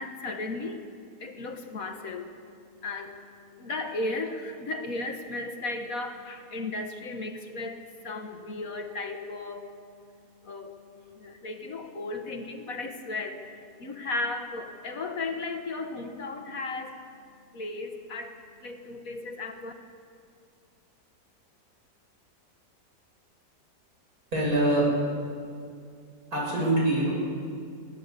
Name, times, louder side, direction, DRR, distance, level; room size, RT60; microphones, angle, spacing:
voice 1, 0.0-2.3 2.8-9.7 10.4-10.8 11.1-17.0 17.5-19.7, left 2 dB, 60° left, 6 dB, 1.8 m, -35 dB
voice 2, 24.3-24.9 26.3-27.1, right 1 dB, 60° right, -4 dB, 7.9 m, -24 dB
22.0 x 16.0 x 8.3 m, 2.3 s
omnidirectional pair, 1.7 m